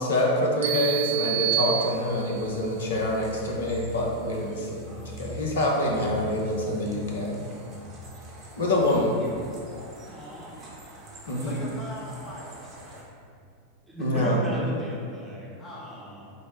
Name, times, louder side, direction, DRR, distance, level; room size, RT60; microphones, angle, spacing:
voice 1, 0.0-4.9 5.2-7.4 8.6-9.1 11.3-11.6 14.0-14.4, left 1 dB, 65° left, -1 dB, 0.8 m, -26 dB
sound 1, 0.6-2.5, right 12 dB, 60° right, 0.5 m, -28 dB
sound 2, 1.8-13.0, equal, 35° right, 1.0 m, -43 dB
voice 2, 9.9-10.6 11.4-11.7 13.9-16.3, right 1 dB, 5° right, -8 dB, 0.9 m, -37 dB
voice 3, 11.4-13.1 15.6-16.1, left 1 dB, 25° left, -5 dB, 0.7 m, -42 dB
5.5 x 2.1 x 4.6 m, 2.3 s
figure-of-eight pair, 90°, 0 cm